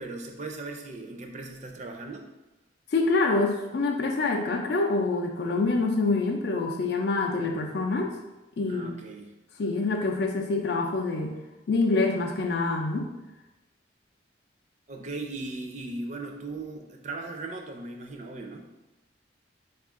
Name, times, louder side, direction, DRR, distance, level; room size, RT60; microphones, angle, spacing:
voice 1, 0.0-2.2 8.7-9.3 14.9-18.7, right 2 dB, 35° right, 3 dB, 0.4 m, -38 dB
voice 2, 2.9-8.2 8.6-9.0 9.6-11.4 11.7-13.1, left 3 dB, 55° left, 2 dB, 0.4 m, -26 dB
4.3 x 2.4 x 3.6 m, 1.0 s
head